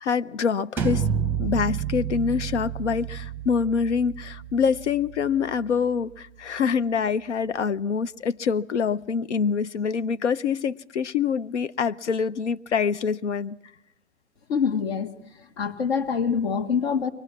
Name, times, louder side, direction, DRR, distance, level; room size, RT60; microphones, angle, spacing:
voice 1, 0.0-1.1 1.4-13.6, left 6 dB, 75° left, 0.9 m, -25 dB
sound 1, 0.8-6.4, right 8 dB, 5° right, 0.9 m, -31 dB
voice 2, 14.5-15.1 15.6-17.1, left 6 dB, 60° left, 1.9 m, -25 dB
23.5 x 19.0 x 7.4 m
hypercardioid pair, 130°, 35 cm